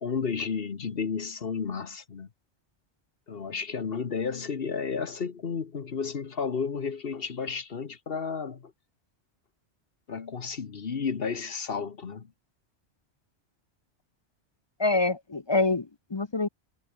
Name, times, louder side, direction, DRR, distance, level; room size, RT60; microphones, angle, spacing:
voice 1, 0.0-2.3 3.3-8.7 10.1-12.3, left 5 dB, 55° left, 1.3 m, -32 dB
voice 2, 14.8-16.5, left 3 dB, 30° left, 0.6 m, -26 dB
omnidirectional pair, 1.2 m